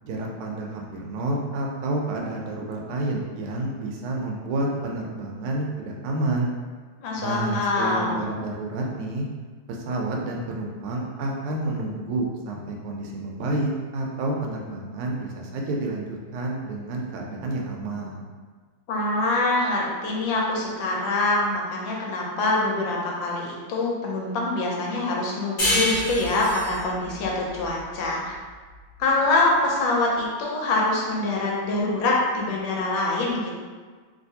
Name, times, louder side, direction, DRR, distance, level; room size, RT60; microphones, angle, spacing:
voice 1, 0.0-6.5 7.2-9.3 9.7-18.2, right 2 dB, 85° right, -1 dB, 1.5 m, -29 dB
voice 2, 7.0-8.2 18.9-28.3 29.0-33.5, left 2 dB, 75° left, -2 dB, 1.3 m, -24 dB
sound 1, 25.6-28.8, left 1 dB, 50° left, 0.8 m, -28 dB
3.2 x 2.8 x 2.7 m, 1.5 s
omnidirectional pair, 2.3 m